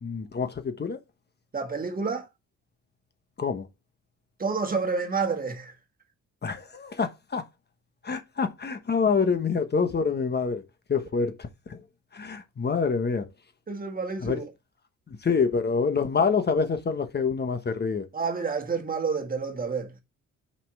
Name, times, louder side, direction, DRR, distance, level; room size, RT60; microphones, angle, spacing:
voice 1, 0.0-1.0 3.4-3.7 6.4-7.4 8.0-10.6 10.9-11.8 12.1-13.3 14.2-14.4 15.2-18.1, left 5 dB, 35° left, 1.2 m, -26 dB
voice 2, 1.5-2.3 4.4-5.7 13.7-14.5 18.1-19.9, right 4 dB, 30° right, 1.6 m, -29 dB
5.7 x 5.6 x 4.7 m
cardioid pair, 90°, 30 cm